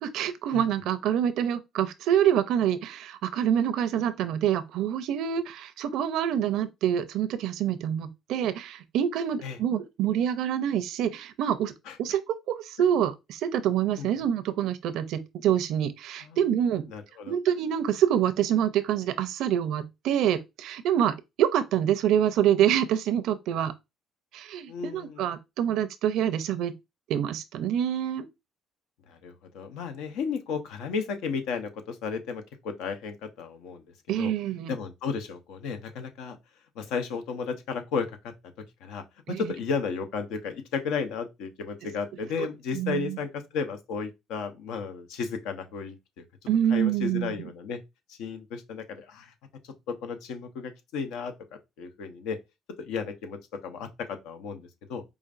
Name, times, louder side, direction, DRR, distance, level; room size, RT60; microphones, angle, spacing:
voice 1, 0.0-11.7 12.0-16.8 17.3-23.7 24.3-26.7 27.1-28.3 34.1-34.7 39.3-39.5 42.4-42.5 42.7-43.2 46.5-47.3, right 10 dB, 75° right, 0.5 m, -26 dB
voice 2, 16.9-17.3 24.7-25.3 29.1-33.8 34.2-34.3 34.7-36.4 36.8-38.3 38.8-46.2 46.7-47.8 48.1-49.3 49.9-51.3 51.8-52.4 52.8-55.0, left 5 dB, 85° left, 0.7 m, -34 dB
4.9 x 2.5 x 2.5 m
cardioid pair, 105°, 0 cm